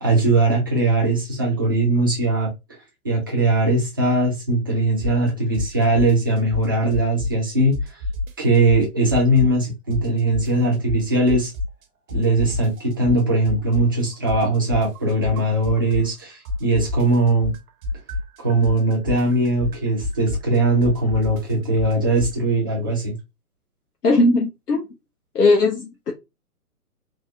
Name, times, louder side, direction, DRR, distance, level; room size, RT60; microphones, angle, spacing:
voice 1, 0.0-2.5 3.0-7.8 8.4-11.5 12.1-17.5 18.4-23.1, right 2 dB, 15° right, 0.4 m, -20 dB
sound 1, 5.0-5.3 5.5-7.5 7.7-9.7 9.9-11.8 12.1-16.2 16.4-22.4, left 3 dB, 65° right, 0.8 m, -28 dB
voice 2, 24.0-24.9 25.3-26.1, left 2 dB, 90° left, 0.8 m, -18 dB
3.4 x 2.2 x 2.6 m
figure-of-eight pair, 135°, 45 cm